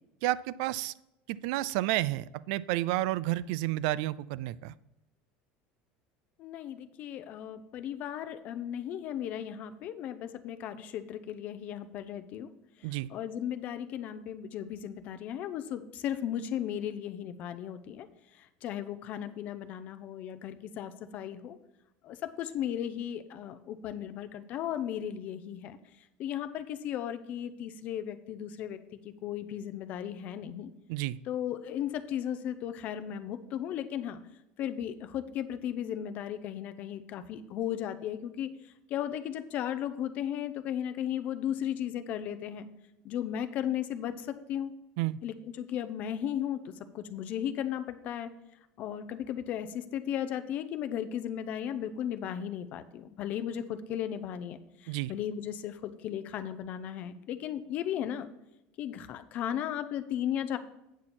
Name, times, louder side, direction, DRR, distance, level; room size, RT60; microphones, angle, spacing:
voice 1, 0.2-0.9 1.3-4.7 12.8-13.1 30.9-31.2 45.0-45.2 54.9-55.1, right 16 dB, 65° right, 18 dB, 0.3 m, -31 dB
voice 2, 6.4-12.5 13.1-18.1 18.4-21.6 22.0-25.8 26.2-30.7 31.3-34.2 34.6-38.5 38.9-42.7 43.0-44.7 45.2-48.3 48.8-58.3 58.8-60.6, left 10 dB, 40° left, 10 dB, 0.6 m, -35 dB
8.1 x 7.3 x 4.3 m, 0.91 s
cardioid pair, 165°, 4 cm